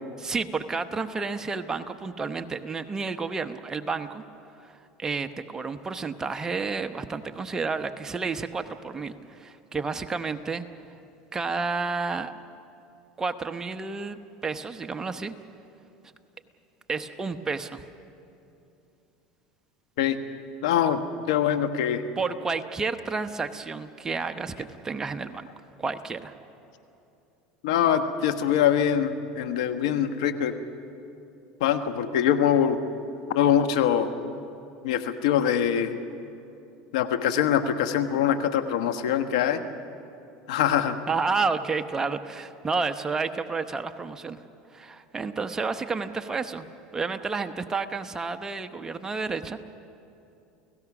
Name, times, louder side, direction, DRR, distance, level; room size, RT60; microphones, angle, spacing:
voice 1, 0.2-4.2 4.6-10.6 11.3-12.3 13.2-15.3 16.9-17.8 22.2-25.5 25.8-26.3 41.1-44.4 44.7-46.6 46.9-49.6, right 4 dB, 20° right, 8 dB, 0.9 m, -31 dB
voice 2, 20.6-21.0 21.3-22.0 27.6-30.5 31.6-32.8 33.3-34.1 34.8-36.0 36.9-39.6 40.5-41.0, left 9 dB, 85° left, 9 dB, 1.2 m, -23 dB
29.5 x 17.5 x 6.1 m, 2.7 s
supercardioid pair, 115°, 3 cm